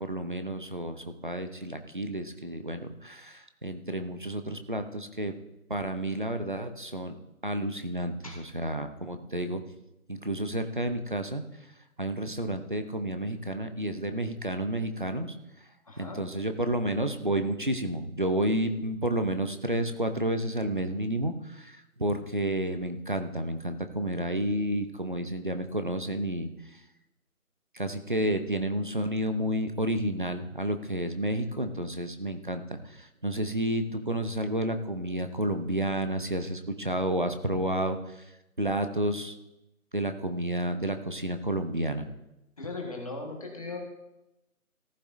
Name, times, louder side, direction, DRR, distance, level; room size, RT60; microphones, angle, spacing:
voice 1, 0.0-5.3 5.7-7.1 7.4-9.6 10.1-11.4 12.0-15.4 16.0-26.8 27.7-38.2 38.6-39.4 39.9-42.1, right 1 dB, 35° right, 8 dB, 0.7 m, -31 dB
voice 2, 15.8-16.2 42.6-43.8, left 3 dB, 25° left, 0 dB, 1.6 m, -38 dB
15.0 x 14.0 x 2.7 m, 0.94 s
figure-of-eight pair, 165°, 44 cm